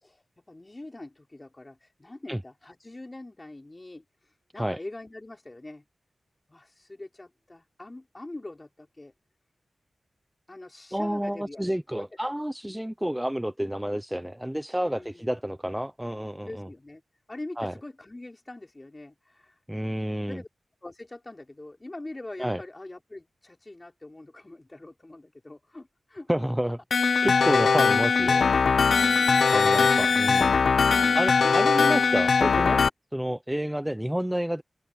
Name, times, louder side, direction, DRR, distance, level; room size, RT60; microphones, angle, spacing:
voice 1, 0.0-4.0 4.5-5.8 6.5-9.1 10.5-11.6 11.9-12.1 14.8-15.3 16.5-17.0 17.3-19.6 20.3-20.5 20.8-26.5 29.0-29.6, left 2 dB, 25° left, 4.1 m, -43 dB
voice 2, 10.9-16.7 17.6-17.7 19.7-20.4 22.4-22.6 26.3-26.8 27.1-28.4 29.5-30.6 31.1-32.8 33.1-34.6, equal, 5° right, 0.8 m, -29 dB
sound 1, 26.9-32.9, left 5 dB, 80° left, 0.8 m, -21 dB
open air
wide cardioid pair, 75°, 0 cm